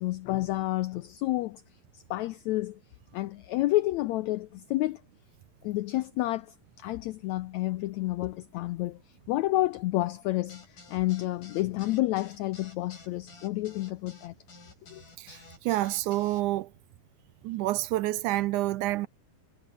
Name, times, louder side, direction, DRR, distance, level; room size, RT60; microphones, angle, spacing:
voice 1, 0.0-1.6 1.9-2.8 3.1-5.0 5.6-9.0 9.3-14.3 14.9-15.0, left 17 dB, 85° left, 1.6 m, -30 dB
sound 1, 10.5-16.4, left 4 dB, 65° left, 8.2 m, -51 dB
voice 2, 15.2-16.7 17.4-19.1, right 16 dB, 80° right, 2.0 m, -28 dB
omnidirectional pair, 3.9 m